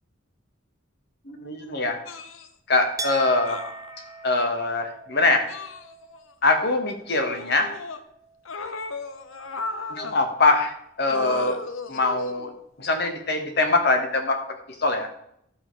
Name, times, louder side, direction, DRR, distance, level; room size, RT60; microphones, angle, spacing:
voice 1, 1.2-2.0 2.7-3.6 4.2-5.5 6.4-7.7 9.9-11.6 11.9-12.5 12.8-14.4 14.8-15.1, left 2 dB, 55° left, 5 dB, 1.4 m, -23 dB
sound 1, 2.1-2.5 3.5-4.4 5.5-6.3 7.1-8.0 8.4-10.2 11.0-12.5 13.7-13.8, left 3 dB, 85° left, 0.8 m, -36 dB
Chink clink, 3.0-8.5 8.8-9.7, right 3 dB, 15° right, 1.1 m, -41 dB
12.5 x 6.3 x 4.7 m, 0.74 s
head